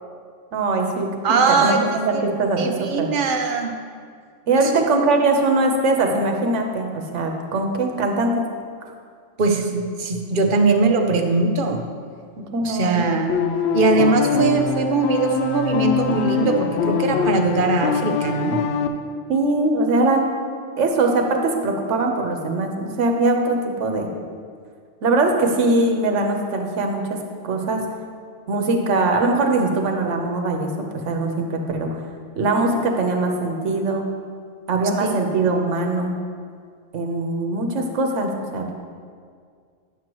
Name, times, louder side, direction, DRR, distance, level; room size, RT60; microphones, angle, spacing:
voice 1, 0.5-3.1 4.5-8.4 12.4-13.0 19.3-20.3 20.8-24.1 25.0-27.2 27.4-27.8 28.5-30.7 31.0-31.9 32.4-34.1 34.7-36.1 36.9-38.7, right 2 dB, 75° right, 3 dB, 1.2 m, -21 dB
voice 2, 1.2-1.8 2.1-2.2 2.6-3.7 4.5-4.8 9.4-11.8 12.6-13.3 13.7-18.6 35.0-35.3, right 4 dB, 50° right, 4 dB, 0.8 m, -21 dB
sound 1, 13.3-18.9, left 7 dB, 70° left, 0.8 m, -23 dB
10.0 x 7.7 x 3.0 m, 2.1 s
omnidirectional pair, 1.2 m